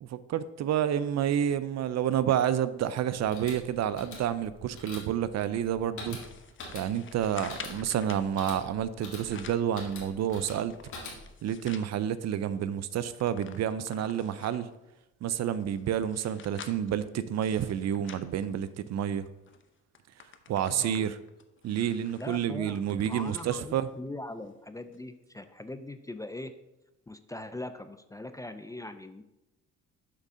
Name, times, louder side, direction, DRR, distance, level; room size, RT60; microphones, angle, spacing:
voice 1, 0.0-6.2 6.7-10.7 11.4-14.7 15.2-19.2 20.5-21.1 21.6-23.9, right 9 dB, 60° right, 14 dB, 0.5 m, -29 dB
sound 1, 3.1-11.5, left 3 dB, 75° left, 2.1 m, -45 dB
sound 2, 6.2-8.3 9.0-9.7 10.2-11.9 12.4-12.5 12.7-14.7 15.3-19.1 19.5-19.6 19.9-23.6 24.0-24.1 24.9-25.0, left 6 dB, 40° left, 0.7 m, -48 dB
voice 2, 20.7-21.1 22.2-26.5 27.1-29.2, left 2 dB, 10° left, 10 dB, 0.4 m, -41 dB
7.7 x 3.6 x 5.5 m, 0.93 s
cardioid pair, 90°, 30 cm